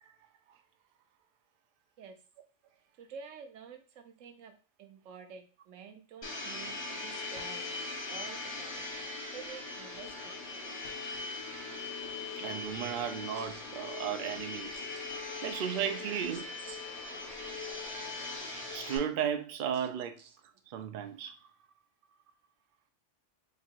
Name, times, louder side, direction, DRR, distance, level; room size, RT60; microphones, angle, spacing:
voice 1, 3.0-4.5 4.8-7.7 8.1-8.9 9.3-10.4 13.3-13.6 14.7-14.9 16.3-16.8 19.7-19.9 20.2-20.4, right 6 dB, 90° right, 1.0 m, -50 dB
Domestic sounds home sounds, 6.2-19.0, left 3 dB, 45° left, 1.3 m, -40 dB
voice 2, 12.4-14.8 15.4-16.5 18.7-20.2 20.7-21.4, right 8 dB, 60° right, 0.6 m, -35 dB
2.9 x 2.8 x 4.4 m
omnidirectional pair, 1.3 m